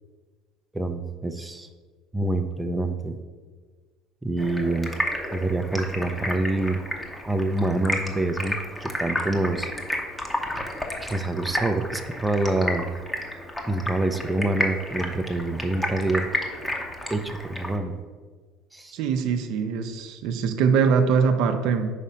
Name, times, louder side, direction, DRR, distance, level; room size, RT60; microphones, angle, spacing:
voice 1, 0.7-1.7 2.1-3.2 4.2-4.9 5.3-6.8 7.3-9.7 11.0-12.9 13.7-16.3 17.1-18.0 18.7-19.0, right 2 dB, 10° right, 6 dB, 0.5 m, -26 dB
Stream, 4.4-17.8, left 1 dB, 10° left, 0.8 m, -31 dB
voice 2, 18.9-21.9, right 6 dB, 70° right, 7 dB, 0.6 m, -22 dB
5.0 x 4.1 x 5.6 m, 1.4 s
supercardioid pair, 105°, 0 cm